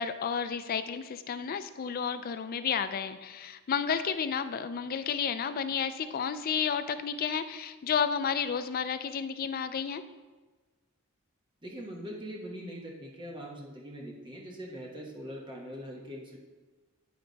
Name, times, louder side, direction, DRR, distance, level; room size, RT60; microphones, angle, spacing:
voice 1, 0.0-10.0, left 7 dB, 45° left, 11 dB, 0.3 m, -31 dB
voice 2, 11.6-16.4, equal, 20° right, -1 dB, 1.1 m, -42 dB
10.0 x 3.4 x 3.9 m, 1.3 s
head